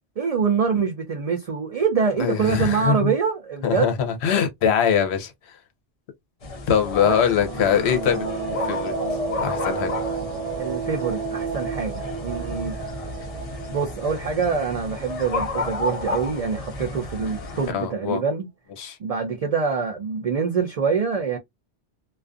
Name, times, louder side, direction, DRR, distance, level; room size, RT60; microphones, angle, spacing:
voice 1, 0.2-3.9 7.1-7.2 10.6-12.8 13.7-18.5 19.0-21.4, right 5 dB, 65° right, 0.3 m, -25 dB
voice 2, 2.2-3.1 3.6-5.3 6.7-8.2 8.7-8.9 9.4-9.9 17.7-18.2 18.8-19.0, left 7 dB, 70° left, 0.9 m, -22 dB
sound 1, 6.4-17.7, left 3 dB, 40° left, 0.6 m, -32 dB
sound 2, 7.1-15.7, right 5 dB, 85° right, 0.9 m, -32 dB
2.4 x 2.3 x 2.4 m
omnidirectional pair, 1.2 m